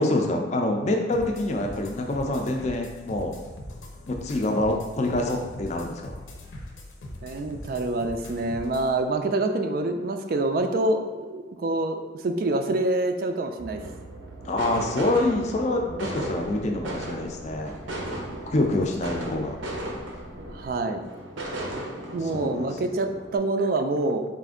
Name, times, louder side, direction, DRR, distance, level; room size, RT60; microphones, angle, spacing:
voice 1, 0.0-3.3 4.1-6.2 14.4-17.7 18.5-19.6 22.3-22.7, left 2 dB, 35° left, 2 dB, 0.4 m, -26 dB
sound 1, 1.1-8.9, left 1 dB, 90° left, 0.7 m, -41 dB
voice 2, 7.2-13.8 20.5-21.0 22.1-24.3, right 2 dB, 50° right, 6 dB, 0.3 m, -26 dB
sound 2, 13.6-20.7, right 1 dB, 5° right, 0.7 m, -45 dB
sound 3, 13.7-23.4, right 1 dB, 80° right, 0.6 m, -36 dB
4.2 x 2.5 x 3.6 m, 1.3 s
head